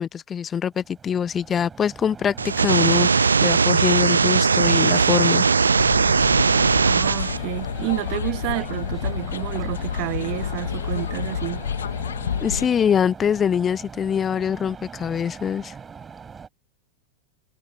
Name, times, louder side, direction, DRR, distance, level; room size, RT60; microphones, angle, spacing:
voice 1, 0.0-5.4 12.4-15.7, left 8 dB, 20° left, 0.9 m, -24 dB
sound 1, 0.7-16.5, right 6 dB, 20° right, 6.7 m, -41 dB
sound 2, 2.4-7.4, right 5 dB, 75° right, 0.7 m, -19 dB
sound 3, 5.8-12.7, left 8 dB, 65° left, 2.7 m, -29 dB
voice 2, 6.9-11.6, right 34 dB, 45° right, 1.3 m, -29 dB
figure-of-eight pair, 90°, 0 cm